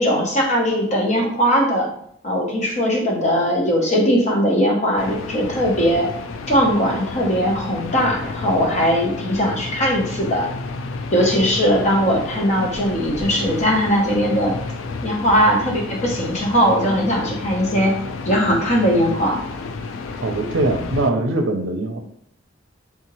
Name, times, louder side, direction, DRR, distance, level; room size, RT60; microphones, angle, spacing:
voice 1, 0.0-1.9 2.2-6.1 6.5-10.5 11.1-14.6 15.0-17.9 18.3-19.4, equal, 35° left, 0 dB, 0.8 m, -19 dB
sound 1, 5.0-21.1, left 4 dB, 80° left, 0.4 m, -31 dB
voice 2, 20.2-22.0, right 2 dB, 75° right, 5 dB, 0.5 m, -22 dB
3.4 x 2.8 x 3.0 m, 0.67 s
head